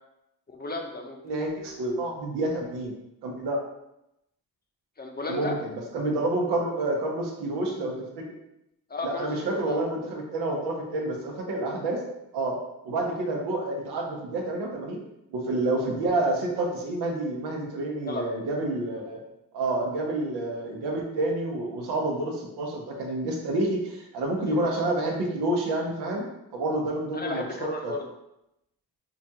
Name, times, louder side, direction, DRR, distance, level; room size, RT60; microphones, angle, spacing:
voice 1, 0.5-1.2 5.0-5.6 8.9-9.8 18.0-18.3 24.5-25.0 27.1-28.0, left 2 dB, 25° left, 2 dB, 0.6 m, -34 dB
voice 2, 1.2-2.9 3.2-3.6 5.3-8.2 9.0-12.0 12.3-12.6 12.8-15.0 15.3-19.2 19.5-26.3 26.5-27.9, right 2 dB, 85° right, 0 dB, 0.9 m, -29 dB
4.9 x 2.4 x 2.8 m, 0.86 s
supercardioid pair, 65°, 39 cm